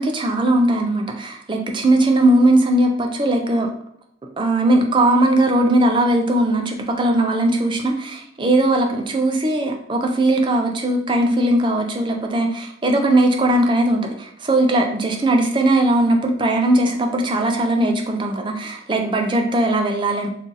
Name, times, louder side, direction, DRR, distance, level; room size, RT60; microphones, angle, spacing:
voice 1, 0.0-3.7 4.4-20.3, right 1 dB, 25° right, 3 dB, 0.4 m, -19 dB
2.7 x 2.5 x 3.8 m, 0.70 s
head